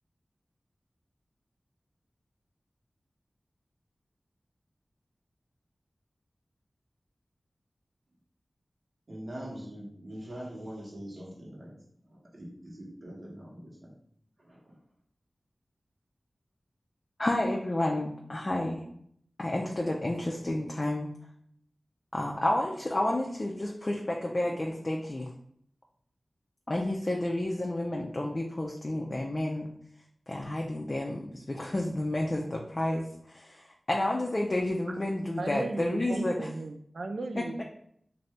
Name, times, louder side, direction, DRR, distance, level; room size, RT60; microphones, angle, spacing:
voice 1, 9.1-11.7 12.1-13.9 14.4-14.8, equal, 55° right, -5 dB, 1.3 m, -43 dB
voice 2, 17.2-18.9 19.4-21.1 22.1-25.3 26.7-29.7 30.3-36.5 37.4-37.5, left 1 dB, 45° left, -1 dB, 0.4 m, -30 dB
voice 3, 35.4-37.6, right 2 dB, 80° right, 7 dB, 0.3 m, -36 dB
2.6 x 2.6 x 3.2 m, 0.67 s
wide cardioid pair, 50°, 0 cm